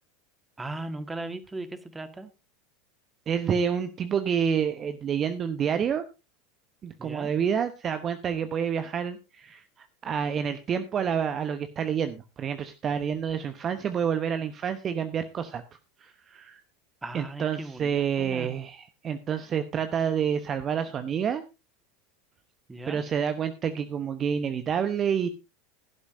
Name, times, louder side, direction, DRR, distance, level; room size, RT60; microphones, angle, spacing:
voice 1, 0.6-2.3 7.0-7.3 17.0-18.5 22.7-23.0, right 2 dB, 15° right, 10 dB, 1.7 m, -38 dB
voice 2, 3.3-6.0 6.8-15.6 16.0-16.6 17.1-21.4 22.9-25.3, right 7 dB, 30° right, 10 dB, 1.0 m, -28 dB
16.5 x 11.5 x 2.7 m, 0.27 s
figure-of-eight pair, 80°, 0 cm